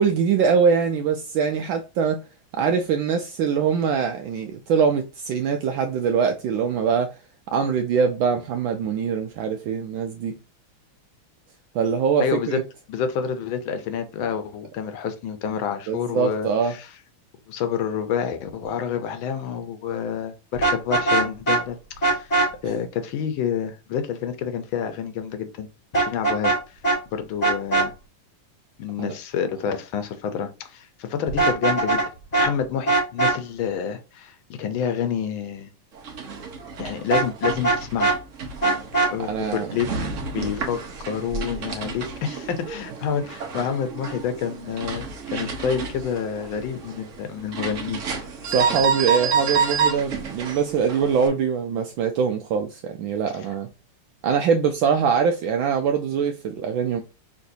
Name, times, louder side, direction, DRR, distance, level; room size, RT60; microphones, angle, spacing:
voice 1, 0.0-2.2 2.5-7.2 7.5-10.4 11.7-12.6 15.9-16.8 29.0-29.1 39.3-39.7 48.5-53.7 54.2-57.0, right 6 dB, 75° right, 1.2 m, -23 dB
voice 2, 12.2-12.6 12.9-16.9 17.5-22.3 22.6-25.7 26.0-26.5 27.1-27.9 28.8-32.0 32.4-35.7 36.8-38.2 39.1-39.9 40.3-40.8 41.1-48.0, left 7 dB, 70° left, 1.5 m, -28 dB
Vehicle horn car horn honking, 20.5-21.6 22.0-22.5 25.9-26.6 26.8-27.0 27.4-27.9 31.3-32.1 32.3-32.5 32.9-33.4 37.1-38.2 38.6-39.1, right 3 dB, 40° left, 0.6 m, -20 dB
sound 1, 35.9-51.3, right 6 dB, 55° right, 0.9 m, -29 dB
5.9 x 3.2 x 2.7 m
omnidirectional pair, 2.4 m